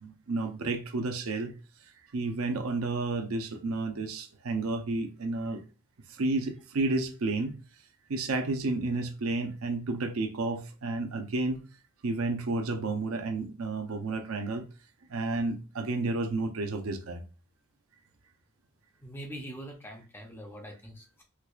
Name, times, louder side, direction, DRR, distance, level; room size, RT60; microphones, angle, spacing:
voice 1, 0.0-1.5 2.1-5.6 6.1-7.6 8.1-11.6 12.0-14.6 15.1-17.2, right 3 dB, 75° right, 0.6 m, -31 dB
voice 2, 19.0-21.2, right 1 dB, 10° left, 0.5 m, -43 dB
4.6 x 2.4 x 2.3 m
head